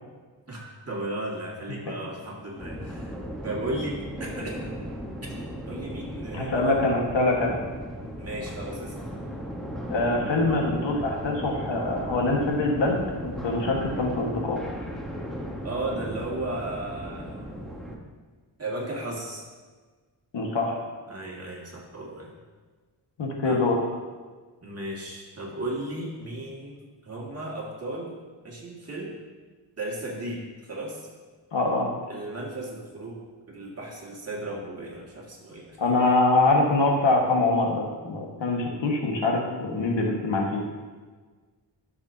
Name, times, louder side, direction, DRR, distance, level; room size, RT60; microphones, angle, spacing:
voice 1, 0.5-3.1 3.4-4.8 5.2-5.3 5.7-6.8 8.2-8.9 15.6-17.5 18.6-19.4 21.1-22.3 23.4-23.6 24.6-28.2 28.4-29.2 29.8-30.4 30.7-31.1 32.1-33.2 33.5-36.0, right 1 dB, 35° right, -3 dB, 1.9 m, -35 dB
sound 1, 2.6-18.0, equal, ahead, 1.0 m, -36 dB
voice 2, 6.3-7.5 9.9-14.6 20.3-20.8 23.2-23.8 31.5-31.9 35.8-40.6, left 2 dB, 80° left, 0 dB, 1.5 m, -24 dB
12.0 x 6.6 x 2.7 m, 1.4 s
wide cardioid pair, 115°, 44 cm